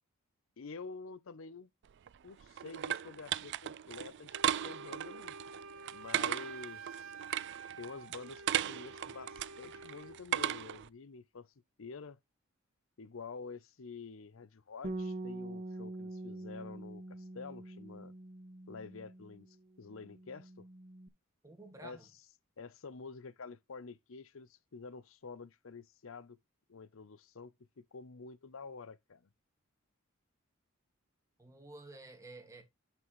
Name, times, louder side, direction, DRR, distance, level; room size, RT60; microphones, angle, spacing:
voice 1, 0.6-1.7 2.2-5.4 5.9-7.1 7.8-11.5 11.8-12.2 13.0-18.1 18.7-20.7 21.8-22.3 22.6-26.4 26.7-29.3, left 4 dB, 65° left, 0.7 m, -48 dB
sound 1, 1.9-10.9, right 11 dB, 55° right, 0.4 m, -37 dB
Wind instrument woodwind instrument, 4.3-10.2, right 4 dB, 70° right, 1.0 m, -50 dB
Bass guitar, 14.8-19.5 19.8-21.1, right 2 dB, 40° right, 0.8 m, -44 dB
voice 2, 21.4-22.0 31.4-32.6, right 2 dB, 15° right, 2.0 m, -51 dB
9.4 x 6.1 x 3.1 m
head